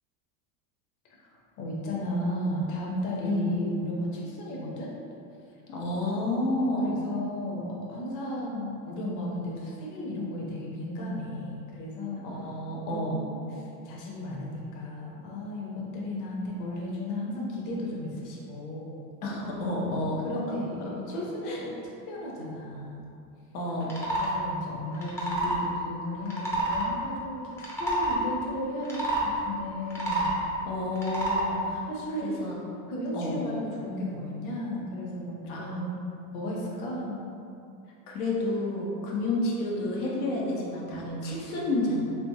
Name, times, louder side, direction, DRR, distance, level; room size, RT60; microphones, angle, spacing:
voice 1, 1.6-4.9 6.8-12.5 12.8-19.0 19.9-21.7 22.1-23.1 24.1-27.4 27.8-30.4 31.9-32.3 32.9-36.0 36.3-37.3, left 1 dB, 45° left, -3 dB, 0.8 m, -34 dB
voice 2, 5.7-6.9 12.2-13.2 19.2-20.3 20.8-21.6 23.5-23.9 30.6-31.8 32.2-32.5 33.1-33.3 35.5-35.7 38.1-42.0, left 1 dB, 85° left, -4 dB, 0.9 m, -30 dB
sound 1, 23.8-24.3 24.9-25.6 26.3-26.9 27.5-28.2 28.8-29.3 29.8-30.4 31.0-31.5, right 1 dB, 5° left, 0.4 m, -28 dB
3.4 x 3.0 x 2.7 m, 2.6 s
supercardioid pair, 120°, 44 cm